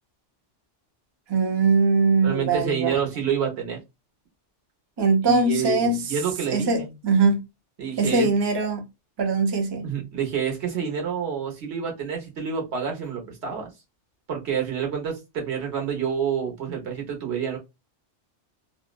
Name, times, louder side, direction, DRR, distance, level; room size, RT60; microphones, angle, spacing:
voice 1, 1.3-2.9 5.0-6.1 6.5-7.4 8.0-8.9 9.2-9.9, right 3 dB, 35° right, 0.4 m, -21 dB
voice 2, 2.2-3.8 5.2-6.9 7.8-8.3 9.8-13.7 14.3-17.6, right 7 dB, 65° right, 1.3 m, -28 dB
2.7 x 2.2 x 2.3 m
omnidirectional pair, 1.2 m